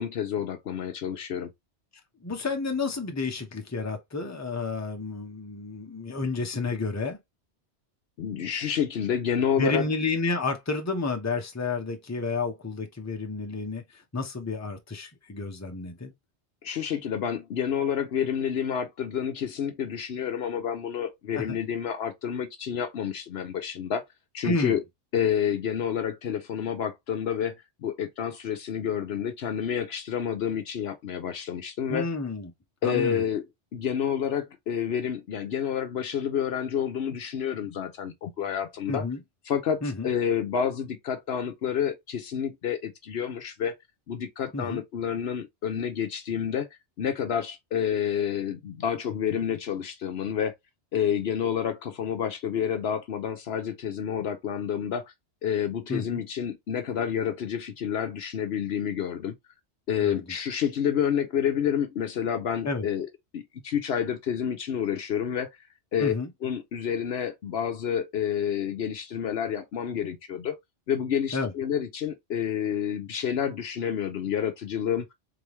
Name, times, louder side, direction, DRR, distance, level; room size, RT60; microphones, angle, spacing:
voice 1, 0.0-1.5 8.2-9.8 16.6-24.0 24.3-24.8 25.1-27.5 27.8-32.0 32.8-33.4 33.7-39.0 39.5-43.7 44.1-46.7 47.0-50.5 50.9-55.0 55.4-59.3 59.9-63.1 63.3-65.5 65.9-66.1 66.4-70.5 70.9-75.1, left 8 dB, 65° left, 0.9 m, -29 dB
voice 2, 2.2-7.2 9.6-16.1 21.3-21.6 24.4-24.8 31.9-32.5 32.8-33.2 38.9-39.2 39.8-40.1 44.5-44.8 55.9-56.2 60.0-60.2 62.6-62.9 66.0-66.3 71.3-71.5, left 3 dB, 15° left, 0.8 m, -30 dB
3.9 x 3.4 x 3.0 m
omnidirectional pair, 1.2 m